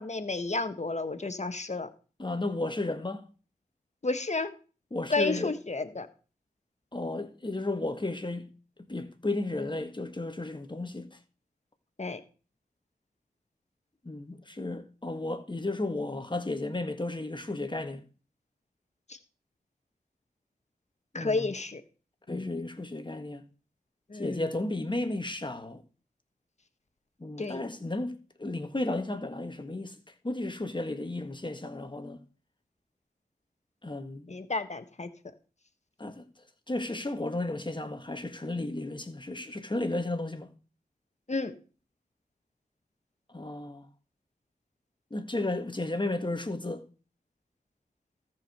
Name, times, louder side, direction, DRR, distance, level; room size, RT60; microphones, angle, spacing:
voice 1, 0.0-1.9 4.0-4.5 5.1-6.1 12.0-12.2 19.1-19.2 21.1-21.8 22.3-22.6 24.1-24.5 27.4-27.6 34.3-35.1 41.3-41.5, left 3 dB, 45° left, 1.4 m, -31 dB
voice 2, 2.2-3.2 4.9-5.5 6.9-8.5 8.9-11.2 14.0-18.0 21.1-21.5 22.3-23.4 24.1-25.8 27.2-29.9 30.2-32.2 33.8-34.3 36.0-36.3 36.7-40.5 43.3-43.9 45.1-46.8, left 2 dB, 30° left, 1.6 m, -33 dB
13.5 x 5.0 x 6.7 m
cardioid pair, 45°, 16 cm